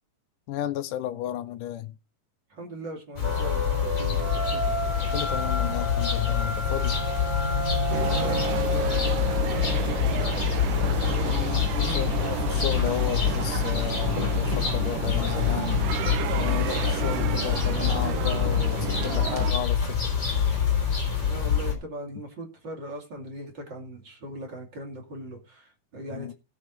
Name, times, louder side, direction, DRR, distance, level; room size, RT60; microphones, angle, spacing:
voice 1, 0.5-2.0 5.1-7.0 11.2-15.9 16.3-20.2 26.1-26.3, left 12 dB, 80° left, 2.4 m, -33 dB
voice 2, 2.5-4.8 8.1-12.0 21.3-26.3, right 1 dB, 35° right, 2.8 m, -39 dB
sound 1, 3.2-21.7, left 8 dB, 35° left, 4.8 m, -26 dB
sound 2, 3.2-10.6, equal, 10° left, 3.7 m, -31 dB
sound 3, 7.9-19.5, right 12 dB, 80° right, 2.3 m, -32 dB
17.0 x 6.4 x 5.2 m
omnidirectional pair, 3.7 m